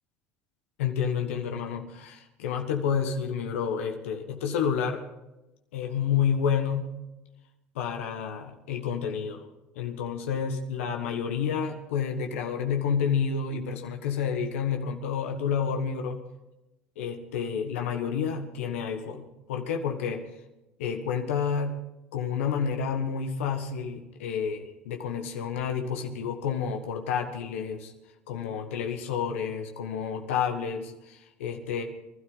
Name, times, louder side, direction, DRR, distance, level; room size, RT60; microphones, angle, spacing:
voice 1, 0.8-5.0 5.7-7.0 7.7-9.4 9.7-16.2 17.0-20.2 20.8-21.8 22.1-27.9 28.3-31.8, left 7 dB, 80° left, 4 dB, 1.3 m, -30 dB
23.5 x 12.5 x 4.0 m, 0.97 s
hypercardioid pair, 70°, 7 cm